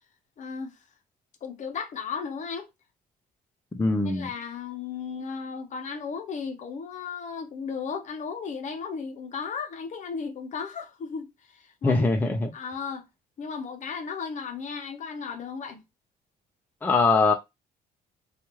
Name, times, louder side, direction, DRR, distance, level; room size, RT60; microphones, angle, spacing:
voice 1, 0.4-0.7 1.4-2.7 4.0-12.0 12.5-13.1 13.4-15.8, left 5 dB, 45° left, 0.7 m, -35 dB
voice 2, 3.8-4.3 11.8-12.5 16.8-17.3, left 3 dB, 10° left, 0.4 m, -22 dB
2.8 x 2.4 x 3.0 m
cardioid pair, 110°, 17 cm